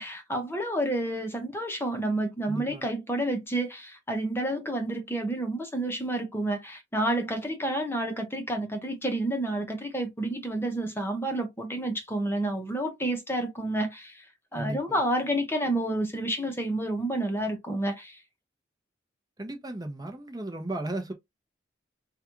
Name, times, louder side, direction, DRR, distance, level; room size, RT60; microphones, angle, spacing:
voice 1, 0.0-14.2 14.5-18.2, right 1 dB, 10° left, 0.8 m, -30 dB
voice 2, 2.4-2.8 14.5-15.0 19.4-21.1, right 1 dB, 20° right, 0.8 m, -35 dB
4.8 x 2.4 x 3.0 m
head